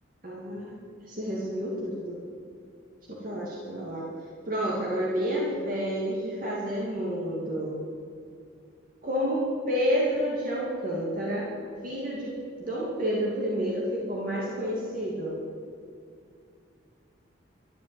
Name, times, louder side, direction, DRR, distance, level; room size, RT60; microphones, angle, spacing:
voice 1, 0.2-2.2 3.2-4.0 4.5-7.7 9.0-11.5 11.8-12.3 12.6-15.3, equal, 45° right, -5 dB, 2.5 m, -29 dB
13.0 x 9.2 x 9.5 m, 2.3 s
head